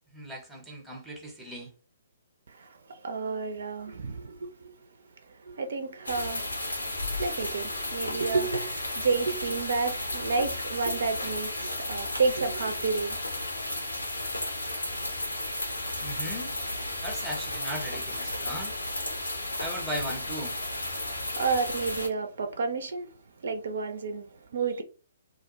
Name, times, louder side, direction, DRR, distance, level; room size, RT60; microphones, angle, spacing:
voice 1, 0.1-1.7 16.0-16.5 17.0-18.8 19.6-20.6, equal, ahead, 0.7 m, -37 dB
voice 2, 2.5-4.7 5.3-6.6 7.2-13.2 21.0-23.1 23.4-24.8, right 4 dB, 60° right, 0.4 m, -30 dB
sound 1, 6.0-22.1, left 1 dB, 80° left, 0.8 m, -33 dB
2.4 x 2.1 x 2.9 m
figure-of-eight pair, 125°, 0 cm